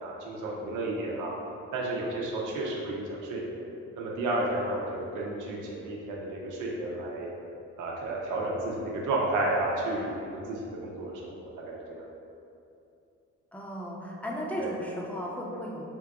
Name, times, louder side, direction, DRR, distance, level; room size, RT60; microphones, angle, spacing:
voice 1, 0.0-1.3 1.7-3.6 4.0-7.3 7.8-11.3 11.7-12.0 14.6-14.7, right 2 dB, 85° right, -3 dB, 0.8 m, -32 dB
voice 2, 13.5-15.8, equal, 5° left, -3 dB, 0.7 m, -35 dB
3.7 x 2.5 x 4.6 m, 2.7 s
cardioid pair, 90°, 30 cm